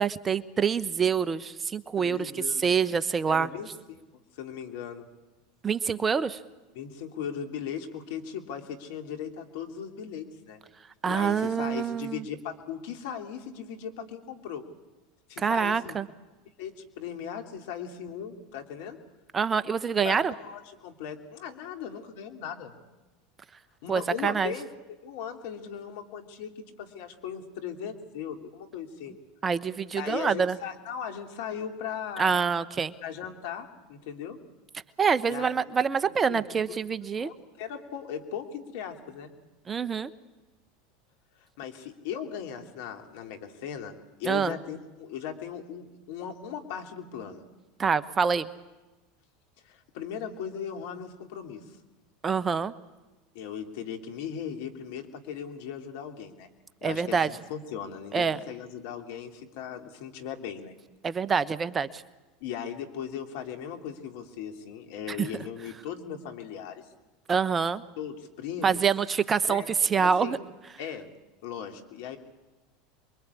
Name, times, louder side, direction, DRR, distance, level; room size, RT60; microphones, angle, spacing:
voice 1, 0.0-3.5 5.6-6.4 11.0-12.2 15.4-16.1 19.3-20.3 23.9-24.5 29.4-30.6 32.2-32.9 35.0-37.3 39.7-40.1 44.3-44.5 47.8-48.5 52.2-52.7 56.8-57.3 58.1-58.4 61.0-62.0 65.1-65.3 67.3-67.8 68.6-70.4, right 6 dB, 25° right, 15 dB, 1.1 m, -26 dB
voice 2, 2.0-2.7 3.3-4.0 4.3-5.1 6.7-10.6 11.1-14.6 15.3-16.0 16.6-19.0 20.0-22.7 23.8-29.1 29.9-32.5 33.0-34.4 35.3-35.8 36.1-36.8 37.1-39.3 41.6-43.9 44.2-47.4 49.6-51.8 53.3-56.5 56.8-60.7 62.4-66.8 68.0-68.8 69.4-69.7 70.0-70.4 70.8-71.1 71.4-72.2, left 8 dB, 65° left, 5 dB, 3.0 m, -38 dB
28.5 x 23.0 x 8.5 m, 1.1 s
hypercardioid pair, 85°, 0 cm